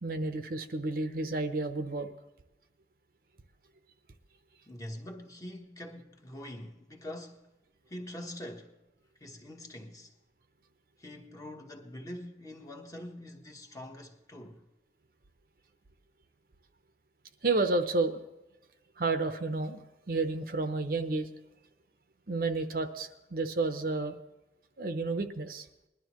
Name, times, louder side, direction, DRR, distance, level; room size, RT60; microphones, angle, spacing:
voice 1, 0.0-2.1 17.4-18.2 19.0-19.8 20.1-21.3 22.3-24.2 24.8-25.7, right 3 dB, 55° right, 0.8 m, -31 dB
voice 2, 4.7-7.5 7.9-8.8 9.2-10.1 11.0-14.6, left 1 dB, 20° left, 1.2 m, -44 dB
20.5 x 11.5 x 3.1 m
head